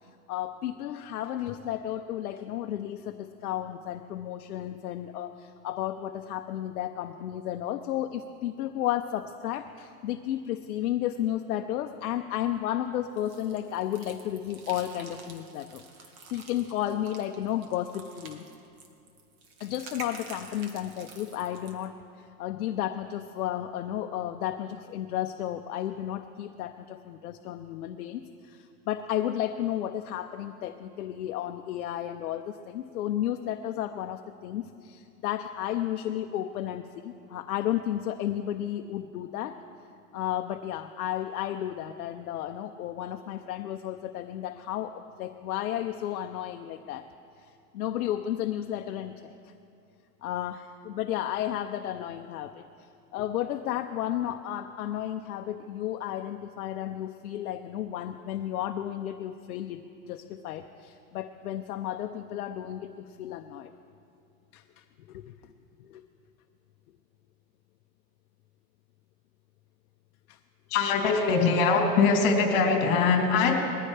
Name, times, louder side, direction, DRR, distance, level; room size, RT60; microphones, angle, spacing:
voice 1, 0.3-18.4 19.6-39.6 40.1-47.0 47.4-49.3 50.2-52.7 53.1-59.8 60.1-63.7 64.5-65.3 65.8-66.0 70.3-70.4, left 11 dB, 65° left, 6 dB, 0.7 m, -33 dB
sound 1, 13.2-21.9, right 4 dB, 55° right, 1.9 m, -48 dB
voice 2, 70.7-73.6, left 4 dB, 35° left, -1 dB, 3.0 m, -22 dB
21.0 x 14.5 x 3.3 m, 2.5 s
supercardioid pair, 170°, 49 cm